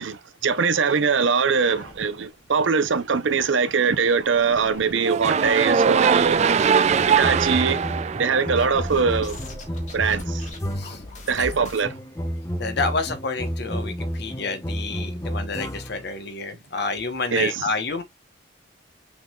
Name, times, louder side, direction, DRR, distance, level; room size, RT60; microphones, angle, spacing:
voice 1, 0.0-6.4 7.1-7.8 8.2-9.4 9.9-10.5 11.3-12.0 17.3-17.7, right 5 dB, 90° right, 0.7 m, -22 dB
sound 1, 1.4-2.5 2.9-3.0 3.3-3.4 4.0-4.9 5.4-6.5 6.8-7.5 8.6-11.9, left 2 dB, 40° left, 1.5 m, -41 dB
sound 2, 5.0-9.2, right 6 dB, 35° right, 0.3 m, -21 dB
sound 3, 6.9-11.2 11.8-16.1, equal, 15° left, 0.7 m, -31 dB
voice 2, 11.3-11.7 12.6-18.0, left 3 dB, 60° left, 1.0 m, -29 dB
5.9 x 3.8 x 2.3 m
head